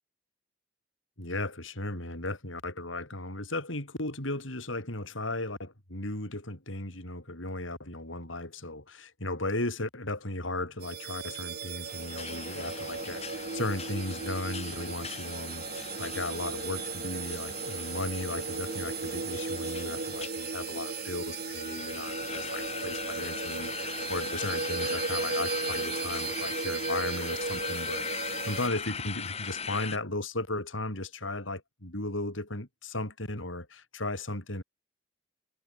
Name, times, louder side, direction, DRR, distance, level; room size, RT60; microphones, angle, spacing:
voice 1, 1.2-34.6, left 2 dB, 80° left, 6.8 m, -36 dB
sound 1, 10.8-28.7, right 5 dB, 50° right, 1.0 m, -36 dB
sound 2, 11.9-30.0, left 6 dB, 30° left, 3.8 m, -39 dB
head